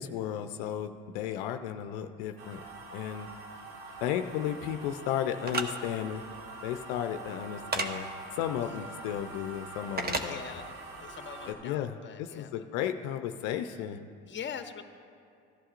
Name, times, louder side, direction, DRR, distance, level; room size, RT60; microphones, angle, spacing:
voice 1, 0.0-2.6 2.9-3.3 4.0-6.2 6.6-10.6 11.5-14.0, left 10 dB, 80° left, 7 dB, 0.6 m, -34 dB
sound 1, 2.4-11.5, right 3 dB, 75° right, 1.9 m, -45 dB
sound 2, 5.4-5.7 7.7-7.9 10.0-10.3, right 3 dB, 30° right, 1.1 m, -30 dB
voice 2, 8.6-8.9 10.2-12.5 14.2-14.8, left 7 dB, 35° left, 7 dB, 0.9 m, -43 dB
16.0 x 11.0 x 2.5 m, 2.4 s
supercardioid pair, 70°, 33 cm